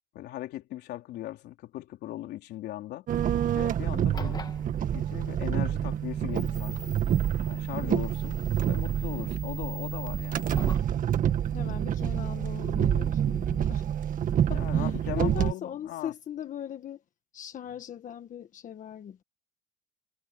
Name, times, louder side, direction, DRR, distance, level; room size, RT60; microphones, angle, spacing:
voice 1, 0.1-3.1 3.6-4.5 4.9-7.0 7.5-8.4 8.7-10.5 14.5-16.1, left 14 dB, 80° left, 3.6 m, -39 dB
sound 1, 3.1-15.5, right 10 dB, 50° right, 1.7 m, -28 dB
sound 2, 4.0-10.9, left 3 dB, 25° left, 1.7 m, -45 dB
voice 2, 11.5-13.9 14.5-17.0 17.3-19.2, left 9 dB, 50° left, 1.4 m, -39 dB
cardioid pair, 110°, 17 cm